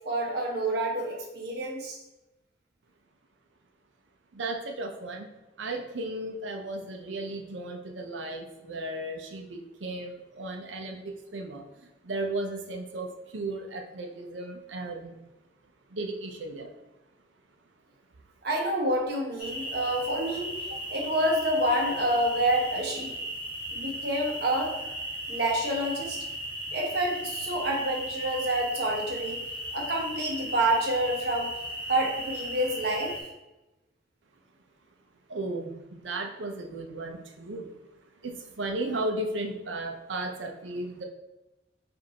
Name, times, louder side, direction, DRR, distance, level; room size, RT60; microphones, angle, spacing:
voice 1, 0.0-2.0 18.4-23.1 23.7-24.7 25.3-26.2 26.7-29.4 29.7-31.5 31.9-33.2, right 1 dB, 60° right, -1 dB, 1.0 m, -28 dB
voice 2, 4.3-5.3 5.6-15.2 15.9-16.7 35.3-37.8 38.2-41.0, right 2 dB, 85° right, 3 dB, 0.6 m, -35 dB
sound 1, 19.4-33.2, equal, 30° left, 1.1 m, -36 dB
5.2 x 2.6 x 2.9 m, 0.99 s
head